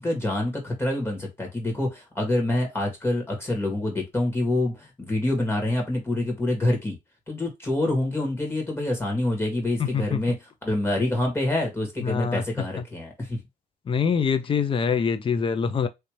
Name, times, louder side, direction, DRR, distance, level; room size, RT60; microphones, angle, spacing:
voice 1, 0.0-7.0 7.3-13.4, left 1 dB, 15° left, 1.8 m, -26 dB
voice 2, 12.0-12.4 13.9-15.9, left 6 dB, 30° left, 0.5 m, -24 dB
3.3 x 2.7 x 3.1 m
cardioid pair, 110°, 17 cm